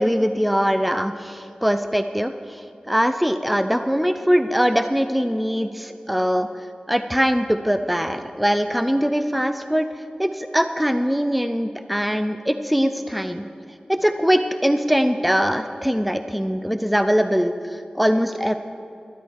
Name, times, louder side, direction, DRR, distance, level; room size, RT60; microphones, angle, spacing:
voice 1, 0.0-2.3 2.9-6.5 6.9-9.9 10.2-13.5 13.9-18.6, equal, ahead, 9 dB, 0.5 m, -22 dB
13.0 x 12.0 x 4.6 m, 2.7 s
wide cardioid pair, 90°, 2 cm